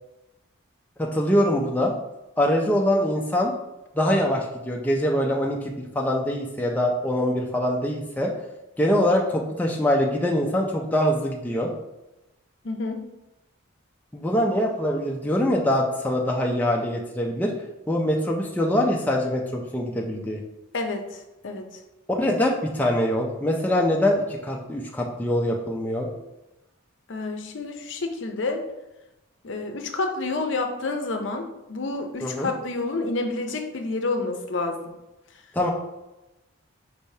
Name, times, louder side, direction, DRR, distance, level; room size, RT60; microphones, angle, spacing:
voice 1, 1.0-1.9 2.4-3.5 3.9-8.3 8.8-11.7 14.1-17.5 17.9-20.4 22.1-26.1 32.2-32.5 35.5-35.7, left 1 dB, 10° left, -1 dB, 0.4 m, -23 dB
voice 2, 12.6-13.0 20.7-21.7 27.1-28.6 29.4-34.9, left 3 dB, 65° left, 5 dB, 0.6 m, -29 dB
5.3 x 3.3 x 2.7 m, 0.97 s
head